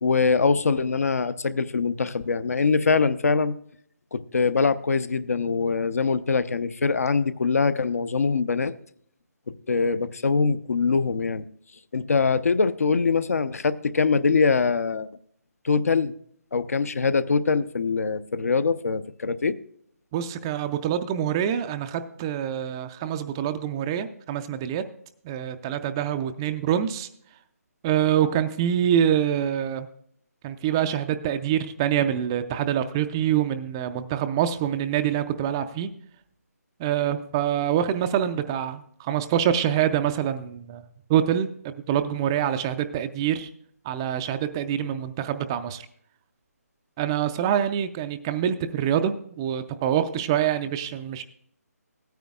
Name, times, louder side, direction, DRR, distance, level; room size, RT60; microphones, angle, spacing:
voice 1, 0.0-3.5 4.1-8.7 9.5-11.4 11.9-15.1 15.6-16.1 16.5-19.6, left 4 dB, 65° left, 14 dB, 0.7 m, -23 dB
voice 2, 20.1-24.8 25.2-27.1 27.8-29.9 30.4-35.9 36.8-40.8 41.1-43.5 43.8-45.9 47.0-51.2, right 10 dB, 15° right, 9 dB, 0.3 m, -25 dB
17.5 x 9.3 x 2.3 m, 0.64 s
figure-of-eight pair, 155°, 9 cm